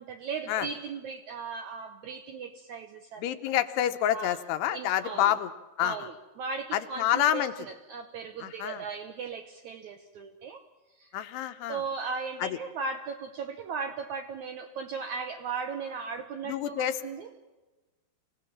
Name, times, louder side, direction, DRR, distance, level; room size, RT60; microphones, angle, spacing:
voice 1, 0.0-3.3 4.1-4.4 4.7-5.3 5.8-10.6 11.0-11.1 11.7-17.3, right 5 dB, 80° right, 7 dB, 1.7 m, -37 dB
voice 2, 3.2-5.5 5.8-6.0 6.7-7.5 8.4-8.8 11.1-11.8 12.4-12.6 16.5-17.0, left 11 dB, 85° left, 10 dB, 3.1 m, -28 dB
26.0 x 17.5 x 7.3 m, 1.2 s
omnidirectional pair, 4.8 m